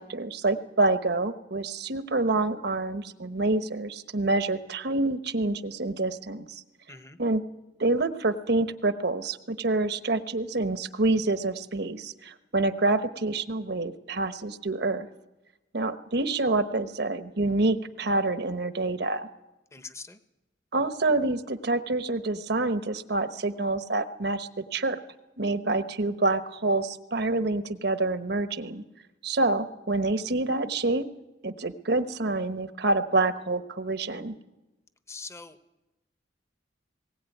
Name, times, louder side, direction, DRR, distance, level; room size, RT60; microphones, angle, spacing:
voice 1, 0.0-6.6 7.2-7.4 7.8-15.1 15.7-19.3 20.7-25.0 25.4-28.8 29.2-31.1 31.4-34.4, right 2 dB, 60° right, 10 dB, 1.1 m, -27 dB
voice 2, 6.9-7.2 19.7-20.2 35.1-35.6, left 4 dB, 15° left, 10 dB, 1.0 m, -42 dB
20.0 x 17.5 x 9.2 m, 1.0 s
head